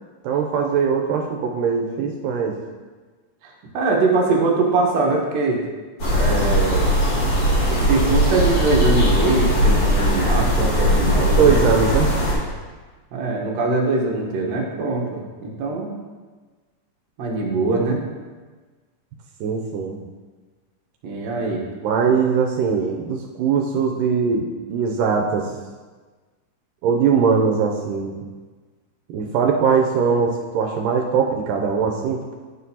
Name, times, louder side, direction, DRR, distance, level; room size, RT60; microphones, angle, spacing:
voice 1, 0.2-2.6 11.4-12.1 19.4-20.0 21.8-25.5 26.8-28.2 29.1-32.2, right 6 dB, 85° right, 1 dB, 2.1 m, -21 dB
voice 2, 3.4-5.6 6.1-6.9 7.7-11.6 13.1-15.9 17.2-18.0 21.0-21.6, right 3 dB, 65° right, -1 dB, 2.0 m, -22 dB
sound 1, 6.0-12.3, equal, 45° left, 2.4 m, -19 dB
9.0 x 6.4 x 2.8 m, 1.4 s
omnidirectional pair, 3.8 m